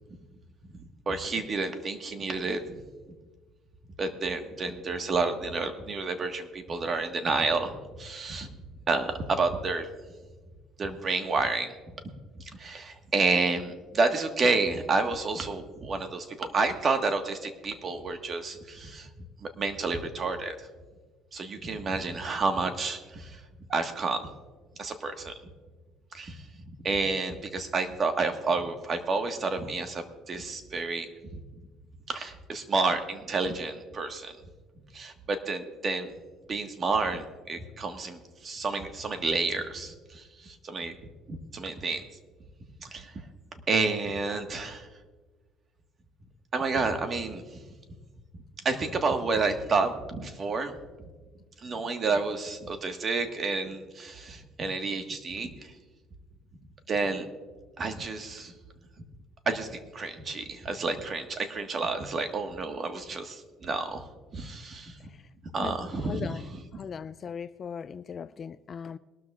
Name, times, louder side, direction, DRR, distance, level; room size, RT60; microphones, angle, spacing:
voice 1, 1.1-2.8 4.0-8.5 8.9-9.9 10.8-11.7 12.6-19.1 19.4-20.5 21.3-23.4 23.7-24.2 24.8-25.3 26.1-26.4 26.8-31.1 32.1-34.4 34.9-36.1 36.5-40.9 41.3-42.0 42.8-43.1 43.7-44.9 46.5-47.4 48.6-50.8 51.6-55.5 56.9-57.3 57.8-58.5 59.4-65.0 65.5-66.4, right 3 dB, 35° right, 6 dB, 1.4 m, -30 dB
voice 2, 66.0-66.4 66.7-69.0, left 7 dB, 35° left, 14 dB, 0.3 m, -38 dB
22.0 x 12.5 x 2.4 m, 1.4 s
cardioid pair, 130°, 0 cm